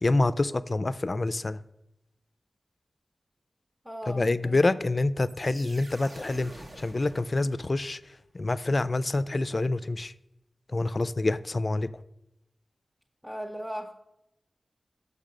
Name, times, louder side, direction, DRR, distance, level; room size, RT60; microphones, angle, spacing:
voice 1, 0.0-1.6 4.1-10.1 10.7-11.9, left 2 dB, 45° left, 15 dB, 0.3 m, -27 dB
voice 2, 3.8-4.8 13.2-13.9, equal, 5° right, 1 dB, 0.7 m, -38 dB
sound 1, 5.2-8.0, right 1 dB, 50° right, 0.9 m, -48 dB
6.6 x 5.0 x 6.5 m, 0.86 s
wide cardioid pair, 70°, 0 cm